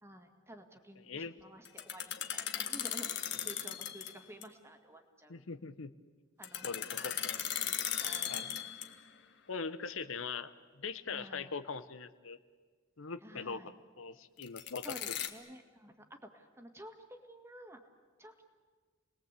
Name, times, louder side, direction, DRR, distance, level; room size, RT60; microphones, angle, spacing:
voice 1, 0.0-5.4 6.4-7.3 7.6-8.4 11.1-11.5 13.2-13.7 14.6-17.8 18.2-18.4, equal, 15° right, 5 dB, 2.0 m, -52 dB
sound 1, 1.7-4.2 4.4-4.5 6.4-9.1 14.4-15.3, left 10 dB, 55° left, 1.6 m, -37 dB
voice 2, 5.3-5.9 6.6-7.4 8.3-8.5 9.5-12.4 13.0-13.6 14.0-15.1, left 5 dB, 75° left, 12 dB, 0.9 m, -41 dB
29.5 x 20.5 x 8.3 m, 1.5 s
head